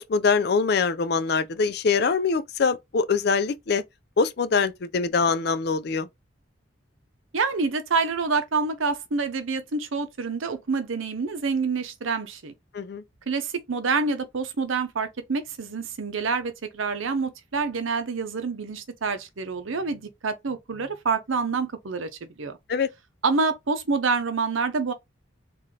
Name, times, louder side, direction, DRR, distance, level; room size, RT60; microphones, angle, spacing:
voice 1, 0.0-3.8 4.2-6.1 12.7-13.0 22.7-22.9, left 5 dB, 55° left, 0.4 m, -23 dB
voice 2, 7.3-12.5 13.3-22.1 22.4-22.6 23.2-24.9, right 4 dB, 85° right, 0.7 m, -27 dB
3.8 x 2.5 x 3.3 m
head